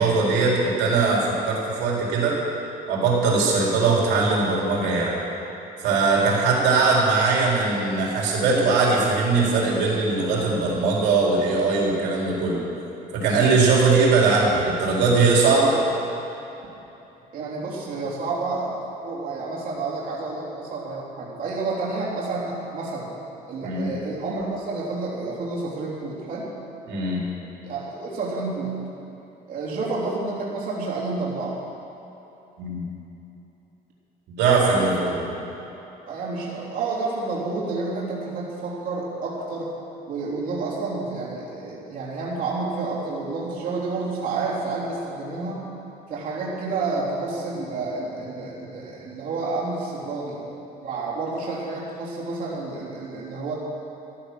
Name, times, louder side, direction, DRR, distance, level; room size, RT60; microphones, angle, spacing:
voice 1, 0.0-2.4 2.9-5.2 5.8-12.6 13.1-15.8 23.6-23.9 26.9-27.2 32.6-32.8 34.3-35.2, right 4 dB, 85° right, -3 dB, 4.1 m, -20 dB
voice 2, 17.3-18.7 19.0-23.1 23.5-26.5 27.6-28.8 29.5-31.6 34.5-35.1 36.1-39.7 40.1-45.6 46.1-50.4 50.8-53.5, right 3 dB, 55° right, -6 dB, 3.6 m, -29 dB
14.5 x 12.5 x 6.3 m, 3.0 s
cardioid pair, 110°, 17 cm